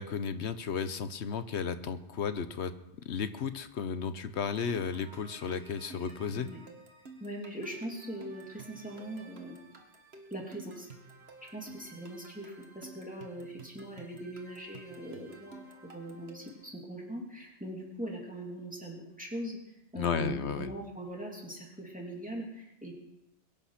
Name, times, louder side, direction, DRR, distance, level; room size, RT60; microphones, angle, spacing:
voice 1, 0.0-2.7 3.0-6.5 19.9-20.7, left 6 dB, 70° left, 11 dB, 1.1 m, -34 dB
sound 1, 4.4-16.7, right 3 dB, 60° right, 1.8 m, -52 dB
voice 2, 7.2-9.6 10.3-10.9 11.4-22.9, right 1 dB, 5° right, -1 dB, 3.0 m, -41 dB
22.0 x 9.0 x 5.9 m, 0.87 s
omnidirectional pair, 1.2 m